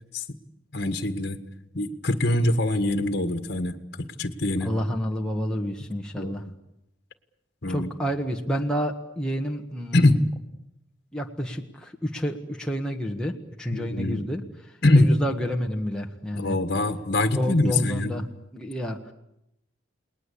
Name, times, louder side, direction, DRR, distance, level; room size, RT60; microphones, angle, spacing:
voice 1, 0.7-1.4 1.7-4.7 6.2-6.4 7.6-7.9 9.9-10.2 13.7-14.2 14.8-15.1 16.3-18.1, left 2 dB, 50° left, 7 dB, 1.7 m, -23 dB
voice 2, 4.6-6.4 7.7-10.2 11.1-14.4 14.9-16.6 17.3-18.3 18.5-19.1, equal, 5° left, 0 dB, 1.5 m, -29 dB
30.0 x 20.0 x 8.6 m, 0.83 s
head